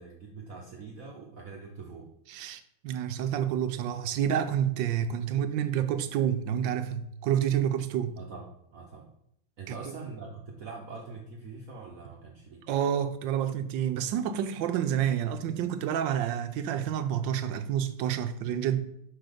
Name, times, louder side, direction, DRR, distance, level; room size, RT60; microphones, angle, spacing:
voice 1, 0.0-2.1 8.2-9.1 9.6-12.6, right 4 dB, 55° right, 1.1 m, -43 dB
voice 2, 2.3-8.2 9.7-9.8 12.7-18.8, right 9 dB, 80° right, 1.3 m, -29 dB
6.1 x 5.7 x 5.1 m
omnidirectional pair, 2.1 m